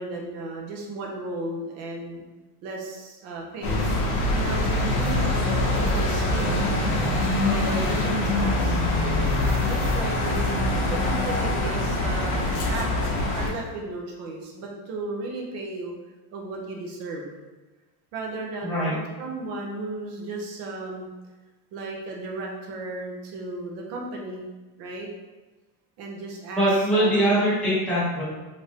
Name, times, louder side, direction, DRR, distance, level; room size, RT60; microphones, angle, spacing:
voice 1, 0.0-2.2 2.6-3.8 4.3-6.7 7.4-10.6 10.9-13.1 13.3-15.9 16.3-17.3 18.1-21.1 21.7-24.4 24.8-25.1 26.0-27.4, right 2 dB, 35° right, -1 dB, 0.4 m, -35 dB
sound 1, 3.6-13.5, left 2 dB, 55° left, 0.9 m, -24 dB
voice 2, 18.6-18.9 26.5-28.2, right 1 dB, ahead, -11 dB, 0.8 m, -22 dB
3.3 x 2.5 x 2.7 m, 1.2 s
cardioid pair, 170°, 47 cm